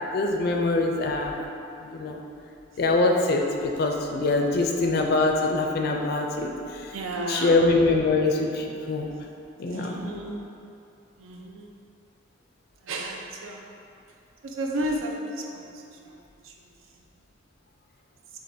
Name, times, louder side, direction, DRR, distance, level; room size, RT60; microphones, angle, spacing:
voice 1, 0.1-1.4 1.9-2.2 2.8-6.5 7.3-9.1 9.6-10.0, left 3 dB, 50° left, 2 dB, 0.4 m, -23 dB
voice 2, 6.9-7.6 9.7-10.4 11.2-11.7 12.9-13.6 14.4-15.7, right 1 dB, 85° right, 1 dB, 0.5 m, -32 dB
7.0 x 2.5 x 2.6 m, 2.6 s
head